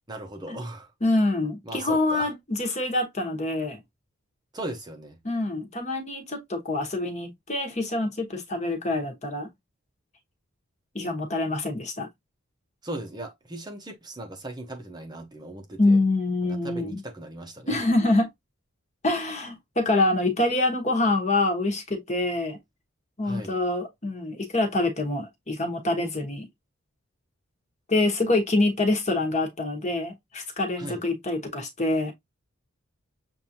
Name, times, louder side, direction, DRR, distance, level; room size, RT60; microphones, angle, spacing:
voice 1, 0.1-0.9 1.7-2.3 4.5-5.2 12.8-16.0 16.4-17.8 23.2-23.5 30.8-31.0, right 1 dB, 20° right, 0.8 m, -38 dB
voice 2, 1.0-3.8 5.2-9.5 10.9-12.1 15.8-17.0 17.7-18.3 19.0-22.6 23.2-26.5 27.9-32.1, left 2 dB, 30° left, 1.2 m, -25 dB
7.0 x 2.6 x 2.8 m
head